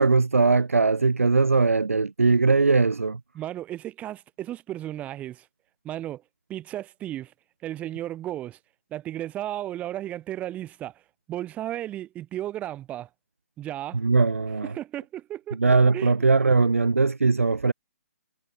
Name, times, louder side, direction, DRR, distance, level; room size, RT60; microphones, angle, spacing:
voice 1, 0.0-3.2 13.9-14.7 15.5-17.7, right 4 dB, 90° right, 0.9 m, -20 dB
voice 2, 3.3-5.5 5.8-6.2 6.5-7.3 7.6-8.6 8.9-10.9 11.3-13.1 13.6-14.0 14.6-15.6 15.9-16.1, right 13 dB, 20° right, 5.2 m, -34 dB
hypercardioid pair, 135°, 7 cm